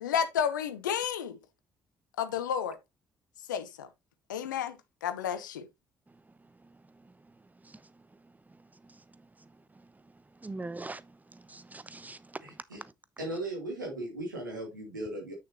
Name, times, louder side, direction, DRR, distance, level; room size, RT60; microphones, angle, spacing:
voice 1, 0.0-1.4 2.2-2.8 3.5-3.9 4.3-5.7, left 8 dB, 80° left, 0.8 m, -31 dB
voice 2, 6.1-12.9, right 2 dB, 15° right, 0.8 m, -46 dB
voice 3, 12.4-12.8 13.2-15.3, right 1 dB, 85° right, 2.6 m, -37 dB
8.8 x 6.5 x 3.0 m
figure-of-eight pair, 45°, 10 cm